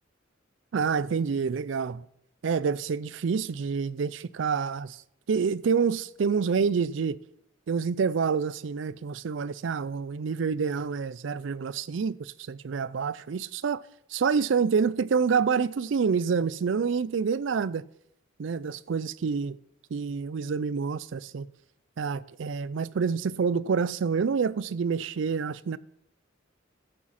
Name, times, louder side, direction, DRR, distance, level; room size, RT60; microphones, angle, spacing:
voice 1, 0.7-2.0 2.4-5.0 5.3-7.2 7.7-13.8 14.1-17.8 18.4-19.6 19.9-21.5 22.0-25.8, right 5 dB, 70° right, 0.4 m, -27 dB
12.5 x 7.4 x 5.7 m
head